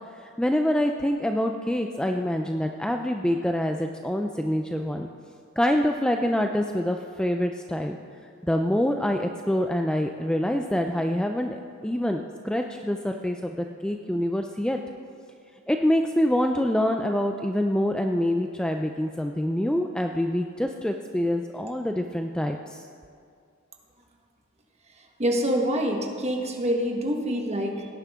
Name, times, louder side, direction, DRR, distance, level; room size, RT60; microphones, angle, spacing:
voice 1, 0.2-5.1 5.6-8.0 8.4-14.8 15.7-22.8, left 1 dB, 5° left, 4 dB, 0.4 m, -26 dB
voice 2, 25.2-27.9, equal, 30° right, 2 dB, 1.4 m, -26 dB
17.5 x 10.5 x 3.6 m, 2.3 s
head